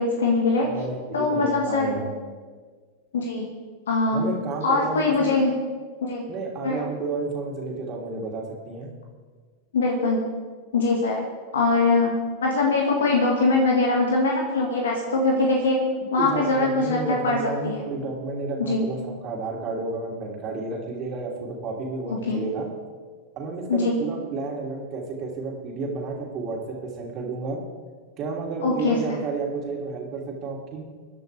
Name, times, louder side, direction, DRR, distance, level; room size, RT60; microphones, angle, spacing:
voice 1, 0.0-0.7 1.1-1.9 3.1-3.5 3.9-4.3 4.6-5.5 6.0-6.3 6.6-6.8 9.7-10.2 10.7-11.2 11.5-15.8 16.1-17.8 18.6-18.9 22.1-22.4 23.7-24.1 28.6-29.2, left 3 dB, 70° left, 0 dB, 2.1 m, -22 dB
voice 2, 0.7-2.1 4.1-5.3 6.3-8.9 16.2-22.7 23.4-27.6 28.2-30.9, right 3 dB, 35° right, -1 dB, 3.3 m, -31 dB
25.0 x 10.5 x 3.5 m, 1.5 s
figure-of-eight pair, 90°, 0 cm